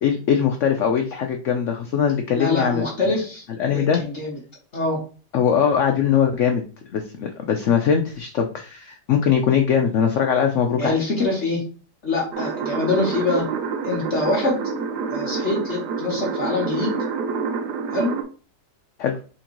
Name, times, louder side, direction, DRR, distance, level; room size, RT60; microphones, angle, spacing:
voice 1, 0.0-2.9 3.6-4.0 5.3-6.6 6.9-10.9 19.0-19.2, left 7 dB, 80° left, 4 dB, 0.6 m, -21 dB
voice 2, 2.3-4.4 4.7-5.0 10.8-11.6 12.0-13.5 13.8-14.6 15.1-16.9 17.9-18.1, left 3 dB, 50° left, -2 dB, 1.1 m, -24 dB
sound 1, 12.3-18.2, right 5 dB, 75° right, 1.3 m, -27 dB
4.3 x 3.8 x 2.9 m, 0.38 s
omnidirectional pair, 1.9 m